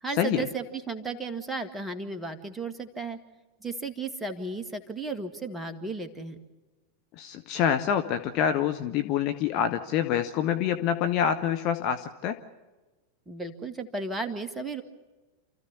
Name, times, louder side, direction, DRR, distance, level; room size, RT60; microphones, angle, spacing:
voice 1, 0.0-3.2 3.6-6.4 13.3-14.8, right 3 dB, 10° right, 7 dB, 2.0 m, -34 dB
voice 2, 7.2-12.4, left 9 dB, 40° left, 9 dB, 1.2 m, -26 dB
28.5 x 14.5 x 8.4 m, 1.2 s
figure-of-eight pair, 90°, 0 cm